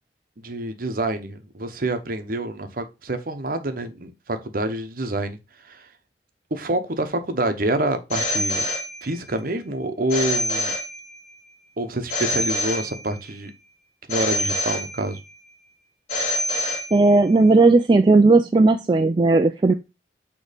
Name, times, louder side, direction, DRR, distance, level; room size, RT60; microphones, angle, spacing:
voice 1, 0.4-5.4 5.6-5.9 6.5-8.7 9.0-10.7 11.8-13.5 14.1-15.2, right 1 dB, 50° right, 0.9 m, -27 dB
Telephone, 8.1-9.4 10.1-11.4 12.1-13.4 14.1-15.4 16.1-17.3, left 1 dB, 40° left, 2.3 m, -26 dB
voice 2, 16.9-19.7, right 3 dB, 25° right, 0.3 m, -16 dB
6.5 x 3.1 x 5.0 m
head